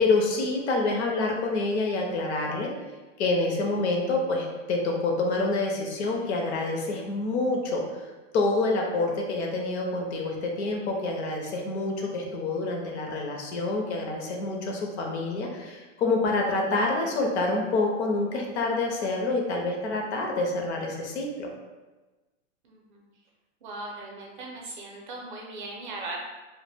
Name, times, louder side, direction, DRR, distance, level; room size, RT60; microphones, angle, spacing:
voice 1, 0.0-2.7 3.2-8.1 8.3-21.5, left 3 dB, 60° left, 0 dB, 0.6 m, -27 dB
voice 2, 22.6-23.0 23.6-26.2, right 2 dB, 40° right, -1 dB, 0.5 m, -38 dB
2.1 x 2.1 x 3.2 m, 1.2 s
supercardioid pair, 165°, 38 cm